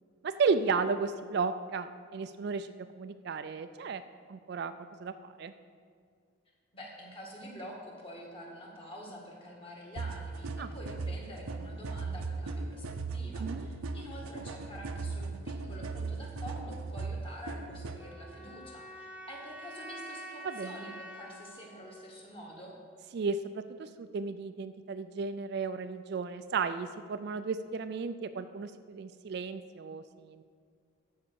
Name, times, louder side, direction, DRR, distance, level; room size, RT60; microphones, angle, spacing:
voice 1, 0.2-4.0 4.3-4.7 5.0-5.1 5.4-5.5 10.6-10.7 13.4-13.7 20.4-20.8 23.1-30.4, right 5 dB, 50° right, 10 dB, 0.3 m, -34 dB
voice 2, 6.7-22.7, equal, 25° left, -2 dB, 1.7 m, -47 dB
sound 1, 10.0-18.0, right 3 dB, 85° right, 0.6 m, -38 dB
sound 2, 18.0-23.0, right 1 dB, 5° right, 0.6 m, -48 dB
12.5 x 4.8 x 6.8 m, 2.1 s
head